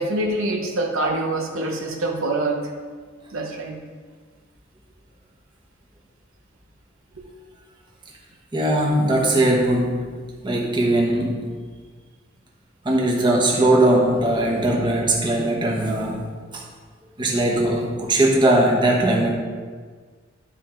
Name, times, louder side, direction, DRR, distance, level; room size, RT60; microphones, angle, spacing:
voice 1, 0.0-2.8 3.3-3.8, right 2 dB, 80° right, 2 dB, 0.9 m, -25 dB
voice 2, 8.5-10.1 10.4-11.6 12.8-16.3 16.5-16.7 17.2-19.3, right 1 dB, 25° right, -2 dB, 1.2 m, -20 dB
11.5 x 4.5 x 3.8 m, 1.5 s
head